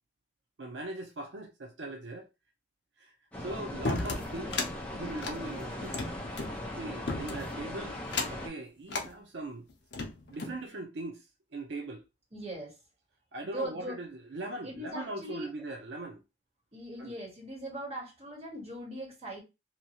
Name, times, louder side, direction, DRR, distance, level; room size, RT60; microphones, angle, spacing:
voice 1, 0.6-2.3 3.0-4.6 4.9-6.0 6.8-8.0 8.3-9.7 10.3-11.3 11.5-12.0 13.3-16.2 17.0-17.1, right 2 dB, 75° right, 0.5 m, -40 dB
sound 1, 3.3-8.5, left 1 dB, 5° left, 0.7 m, -39 dB
sound 2, 3.8-4.7 5.1-6.5 7.1-7.6 8.0-8.5 8.9-9.1 9.7-10.6, left 3 dB, 65° left, 0.6 m, -34 dB
voice 2, 12.3-12.8 13.5-14.0 14.6-15.5 16.7-19.4, right 1 dB, 35° right, 1.4 m, -40 dB
2.8 x 2.3 x 2.7 m
head